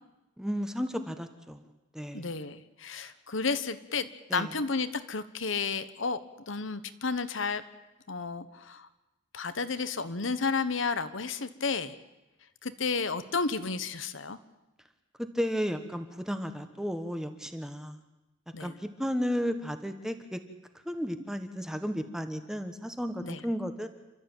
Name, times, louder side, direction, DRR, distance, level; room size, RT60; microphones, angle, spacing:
voice 1, 0.4-1.6 1.9-2.4 2.9-3.1 4.3-4.5 15.2-18.0 18.6-20.4 20.8-23.9, equal, 5° right, 8 dB, 1.3 m, -33 dB
voice 2, 2.1-6.2 6.5-7.6 8.1-8.9 9.3-12.0 12.6-14.4 18.5-18.8 23.2-23.4, left 4 dB, 80° left, 12 dB, 1.2 m, -32 dB
29.0 x 13.0 x 9.1 m, 1.0 s
head